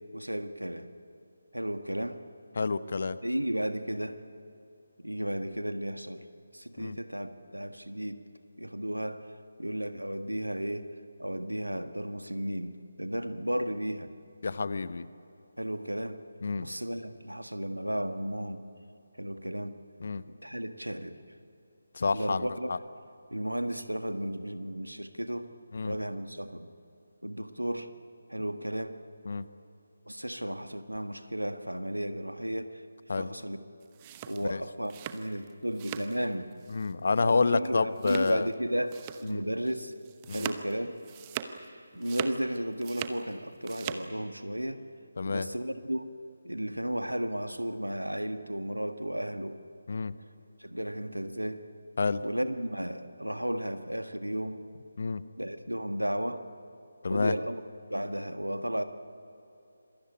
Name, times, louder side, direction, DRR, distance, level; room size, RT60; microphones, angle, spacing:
voice 1, 0.1-0.9 1.5-2.2 3.2-4.2 5.0-6.3 6.5-8.2 8.6-9.3 9.6-10.9 11.2-14.1 15.6-16.2 16.6-18.6 19.2-19.8 20.3-21.2 22.1-22.7 23.3-25.5 25.8-26.7 27.2-27.9 28.3-29.0 30.1-32.8 33.1-33.6 34.3-36.5 37.1-39.9 40.3-40.9 41.9-44.8 45.2-46.2 46.4-49.6 50.6-51.7 52.2-54.6 55.4-56.4 57.1-57.6 57.9-58.8, equal, 85° right, 8 dB, 1.7 m, -34 dB
voice 2, 2.6-3.2 6.8-7.0 14.4-15.1 16.4-16.7 20.0-20.2 21.9-22.8 25.7-25.9 29.3-29.4 33.1-33.3 34.5-34.6 36.7-38.5 39.3-39.4 40.3-40.5 45.2-45.5 49.9-50.1 52.0-52.2 55.0-55.2 57.0-57.3, left 4 dB, 50° left, 14 dB, 1.0 m, -29 dB
sound 1, 33.8-36.2 36.5-36.9 37.2-37.3 38.0-38.5 38.9-39.3 39.7-41.7 41.9-43.2 43.5-44.1, right 10 dB, 20° right, 0.9 m, -40 dB
26.5 x 22.0 x 8.7 m, 2.7 s
figure-of-eight pair, 150°, 0 cm